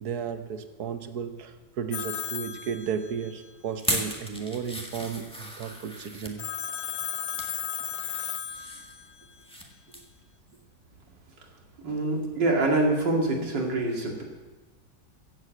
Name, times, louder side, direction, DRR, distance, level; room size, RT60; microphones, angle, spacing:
voice 1, 0.0-6.4, right 7 dB, 65° right, 9 dB, 1.4 m, -34 dB
Telephone, 1.9-3.4 6.4-9.2, left 10 dB, 65° left, 1.1 m, -35 dB
sound 1, 3.8-6.4 7.0-7.6 7.9-9.7 9.9-10.1 10.5-10.6, equal, 5° left, 1.6 m, -36 dB
voice 2, 11.8-14.2, right 2 dB, 80° right, 0 dB, 3.1 m, -25 dB
15.5 x 8.0 x 7.7 m, 1.2 s
omnidirectional pair, 1.9 m